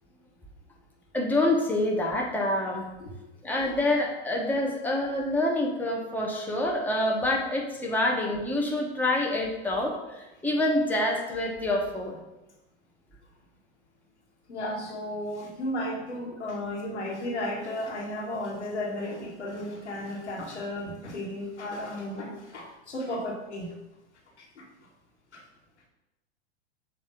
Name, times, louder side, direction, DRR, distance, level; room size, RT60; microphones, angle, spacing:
voice 1, 1.1-2.9 3.4-12.2, left 1 dB, 5° left, -1 dB, 1.1 m, -27 dB
voice 2, 14.5-23.7 24.6-24.7 25.3-25.4, left 1 dB, 90° left, -3 dB, 1.8 m, -34 dB
7.4 x 2.8 x 5.1 m, 0.99 s
hypercardioid pair, 100°, 33 cm